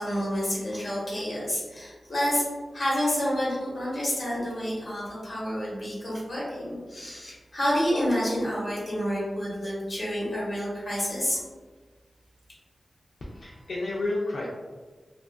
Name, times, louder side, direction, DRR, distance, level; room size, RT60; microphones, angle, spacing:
voice 1, 0.0-2.4 2.7-11.4, equal, 45° left, -7 dB, 1.0 m, -29 dB
voice 2, 13.2-14.5, left 2 dB, 75° left, -5 dB, 0.3 m, -31 dB
2.4 x 2.3 x 2.2 m, 1.4 s
wide cardioid pair, 130°, 0 cm